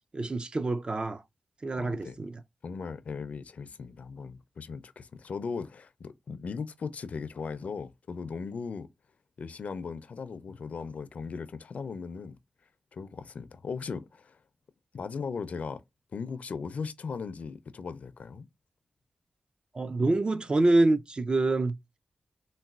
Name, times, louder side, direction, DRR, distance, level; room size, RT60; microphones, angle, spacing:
voice 1, 0.1-1.2 1.6-2.4 19.7-21.8, right 2 dB, 40° right, 0.4 m, -26 dB
voice 2, 1.8-2.2 2.6-8.9 9.4-12.4 12.9-14.4 14.9-15.8 16.1-18.5, left 5 dB, 70° left, 0.4 m, -38 dB
3.9 x 2.1 x 2.3 m
cardioid pair, 65°, 3 cm